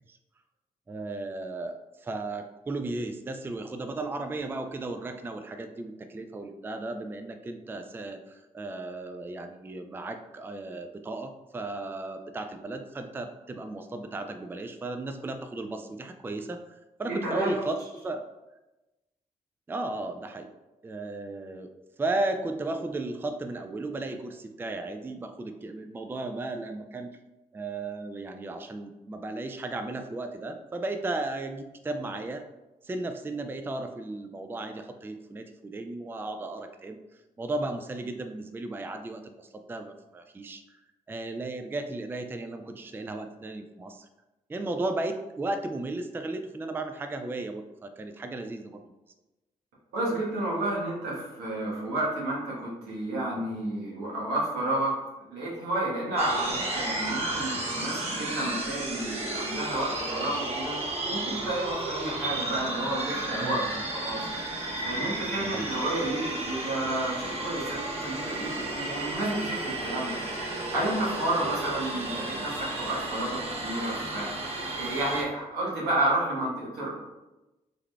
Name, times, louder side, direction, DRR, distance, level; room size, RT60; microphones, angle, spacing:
voice 1, 0.9-18.2 19.7-20.5 20.8-21.7 22.0-27.1 27.5-32.4 32.8-37.0 37.4-40.8 41.1-44.1 44.5-48.8 63.4-63.8 65.4-65.8, right 2 dB, 15° right, 7 dB, 0.3 m, -35 dB
voice 2, 17.1-17.6 49.9-55.0 55.3-63.6 63.9-64.3 64.8-70.2 70.7-74.3 74.7-76.9, right 1 dB, 90° right, -5 dB, 1.2 m, -31 dB
sound 1, 56.2-75.2, right 2 dB, 40° right, 1.0 m, -33 dB
3.8 x 3.3 x 2.2 m, 1.0 s
supercardioid pair, 50°, 16 cm